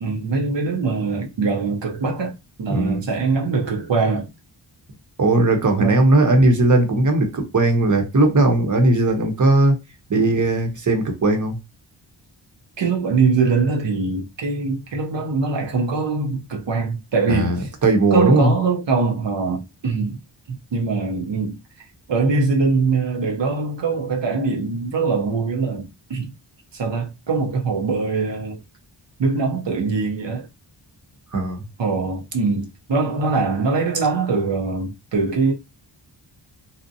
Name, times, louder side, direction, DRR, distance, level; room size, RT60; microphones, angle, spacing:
voice 1, 0.0-4.3 5.8-6.0 12.8-17.7 18.1-20.2 20.5-21.6 22.1-26.3 26.7-28.6 29.2-30.5 31.8-35.5, right 4 dB, 65° right, 0.7 m, -22 dB
voice 2, 2.7-3.0 5.2-9.7 10.1-11.6 17.3-18.5 31.3-31.6, right 2 dB, 40° right, 0.8 m, -18 dB
2.6 x 2.1 x 2.6 m
wide cardioid pair, 70°, 47 cm